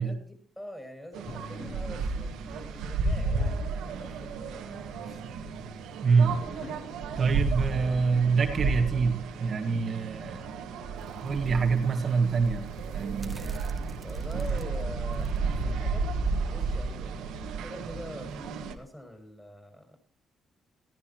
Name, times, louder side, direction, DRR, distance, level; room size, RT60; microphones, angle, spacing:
voice 1, 0.0-5.5 7.2-7.4 14.0-16.1 16.4-20.0, equal, 10° left, 4 dB, 7.4 m, -45 dB
sound 1, 1.1-18.7, right 4 dB, 85° right, 1.8 m, -33 dB
sound 2, 1.3-19.3, left 2 dB, 70° left, 4.8 m, -52 dB
voice 2, 6.0-6.4 7.1-10.4 11.2-12.6 12.9-13.4, right 5 dB, 45° right, 5 dB, 1.8 m, -25 dB
sound 3, 10.9-15.6 16.0-16.1, right 2 dB, 20° right, 1.2 m, -49 dB
21.0 x 15.5 x 3.1 m, 0.42 s
cardioid pair, 90°, 0 cm